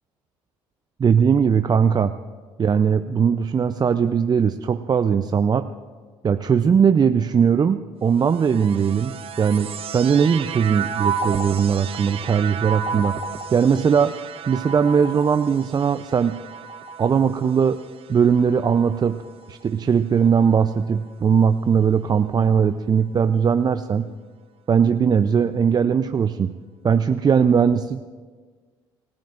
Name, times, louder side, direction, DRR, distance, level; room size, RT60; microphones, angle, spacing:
voice 1, 1.0-2.1 2.6-5.7 6.2-13.1 13.5-14.2 14.5-16.4 17.0-17.8 18.1-19.2 19.5-24.1 24.7-26.5 26.8-28.0, right 7 dB, 35° right, 10 dB, 0.5 m, -19 dB
sound 1, 8.1-19.6 20.4-21.1, right 6 dB, 50° right, 1.0 m, -33 dB
27.0 x 15.5 x 2.5 m, 1.5 s
hypercardioid pair, 60°, 12 cm